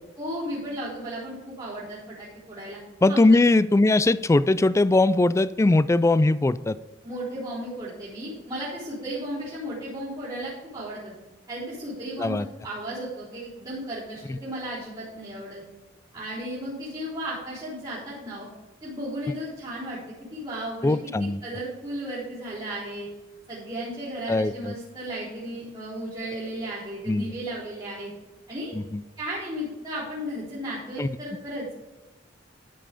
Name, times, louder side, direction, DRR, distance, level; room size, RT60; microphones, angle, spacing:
voice 1, 0.2-2.8 3.1-3.2 7.0-11.1 11.5-12.3 12.6-15.6 16.1-18.5 18.8-23.1 23.5-28.1 28.5-28.7 29.2-31.8, right 1 dB, 25° right, -13 dB, 4.0 m, -35 dB
voice 2, 3.0-6.8 12.2-12.5 20.8-21.4 24.3-24.7 27.1-27.3 28.7-29.0 31.0-31.1, left 2 dB, 15° left, 16 dB, 0.3 m, -20 dB
13.0 x 5.6 x 5.1 m, 1.1 s
head